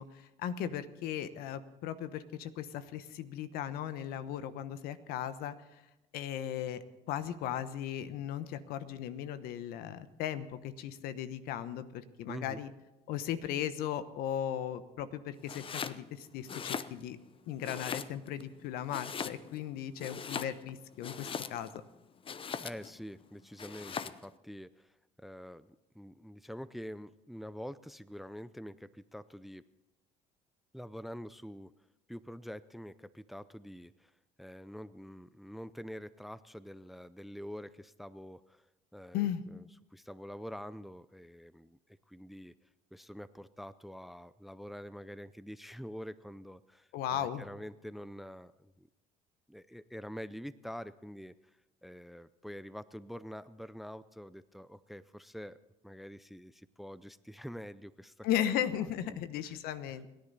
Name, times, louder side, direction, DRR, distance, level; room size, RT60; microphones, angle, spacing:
voice 1, 0.0-5.5 6.1-12.7 13.1-17.2 17.5-21.7 39.1-39.4 46.9-47.5 58.2-60.1, left 10 dB, 75° left, 13 dB, 1.1 m, -37 dB
voice 2, 12.3-12.6 22.6-24.9 25.2-29.6 30.7-31.7 32.1-34.1 34.4-38.6 38.9-39.6 39.9-41.8 42.1-42.5 42.9-48.9 49.5-51.3 51.8-55.6 55.8-58.6 59.1-59.5, equal, ahead, 16 dB, 0.5 m, -46 dB
Domestic sounds home sounds, 15.4-16.0 16.4-17.3 17.6-18.4 18.9-19.7 20.0-21.8 22.2-23.0 23.6-24.3, left 6 dB, 35° left, 0.8 m, -40 dB
29.0 x 10.5 x 4.1 m, 0.95 s
supercardioid pair, 90°, 16 cm